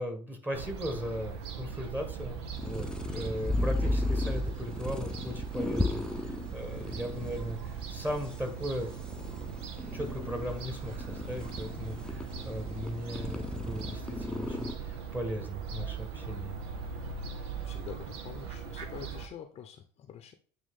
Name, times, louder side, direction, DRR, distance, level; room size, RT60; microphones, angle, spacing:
voice 1, 0.0-6.1 6.5-8.9 9.9-16.5, equal, 10° right, 5 dB, 1.6 m, -37 dB
Fowl / Gull seagull, 0.5-19.3, right 6 dB, 70° right, 0.9 m, -40 dB
sound 1, 2.5-14.7, left 2 dB, 5° left, 0.8 m, -35 dB
voice 2, 17.4-20.3, left 9 dB, 40° left, 7 dB, 0.8 m, -46 dB
8.9 x 3.0 x 3.7 m, 0.42 s
figure-of-eight pair, 65°, 15 cm